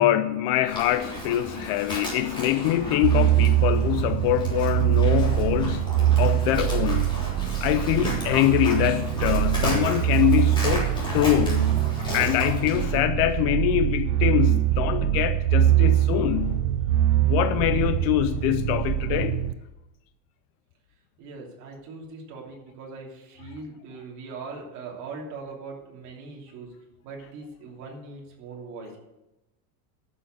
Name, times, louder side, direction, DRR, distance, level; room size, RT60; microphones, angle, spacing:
voice 1, 0.0-7.1 7.6-11.8 12.1-16.6 17.3-19.5, left 13 dB, 45° left, 0.4 m, -24 dB
Livestock farm animals working animals, 0.6-13.0, equal, 10° left, 3.5 m, -34 dB
sound 1, 3.0-19.5, right 13 dB, 85° right, 0.9 m, -23 dB
voice 2, 21.2-26.7 27.0-29.0, right 4 dB, 40° right, 3.1 m, -40 dB
12.5 x 6.9 x 7.7 m
cardioid pair, 170°, 45 cm